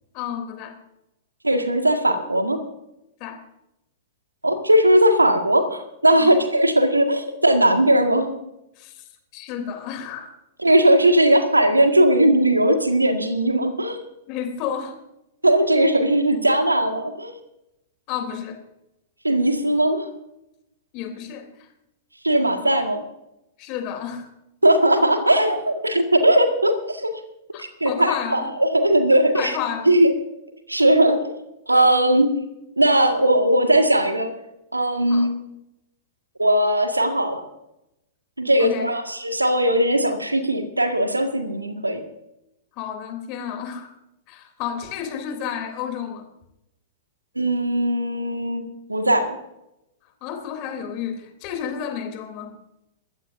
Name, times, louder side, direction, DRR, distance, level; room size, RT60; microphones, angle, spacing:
voice 1, 0.1-0.8 3.2-3.4 6.2-6.4 8.8-10.4 14.3-14.9 18.1-18.6 20.9-21.7 23.6-24.3 27.5-28.5 29.3-29.9 31.7-31.9 35.1-35.3 38.6-38.9 42.8-43.9 44.3-46.3 50.2-52.5, left 8 dB, 40° left, 5 dB, 3.2 m, -31 dB
voice 2, 1.4-2.6 4.4-8.3 10.6-14.0 15.4-17.4 19.2-20.0 22.2-23.0 24.6-27.1 27.6-29.5 29.9-30.1 30.7-31.3 31.7-32.3 32.8-34.3 34.7-35.3 36.4-37.4 38.4-42.0 47.4-48.6 48.9-49.4, right 1 dB, 85° right, 6 dB, 1.8 m, -18 dB
22.5 x 15.5 x 2.7 m, 0.87 s
figure-of-eight pair, 100°, 0 cm